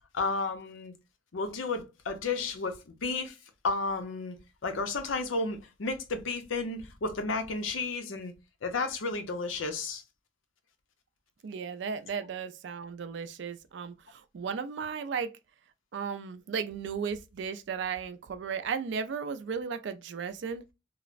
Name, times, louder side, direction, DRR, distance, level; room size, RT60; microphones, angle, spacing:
voice 1, 0.1-0.9 1.3-3.4 3.6-4.3 4.6-8.3 8.6-10.0, left 3 dB, 80° left, 0.6 m, -32 dB
voice 2, 11.4-15.3 15.9-20.6, right 6 dB, 60° right, 0.3 m, -35 dB
3.1 x 2.0 x 2.4 m
head